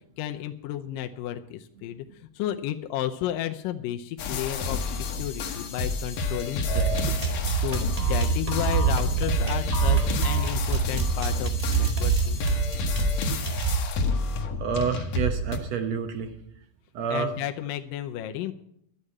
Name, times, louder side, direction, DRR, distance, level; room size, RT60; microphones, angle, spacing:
voice 1, 0.2-2.0 2.4-7.1 7.6-12.4 17.1-18.5, left 12 dB, 80° left, 5 dB, 2.2 m, -32 dB
sound 1, 4.2-15.6, left 4 dB, 60° left, 2.0 m, -30 dB
sound 2, 6.7-13.7, right 6 dB, 45° right, 0.4 m, -26 dB
voice 2, 14.6-16.3 16.9-17.3, right 6 dB, 70° right, 7 dB, 1.6 m, -28 dB
12.0 x 8.2 x 8.7 m, 0.72 s
omnidirectional pair, 4.2 m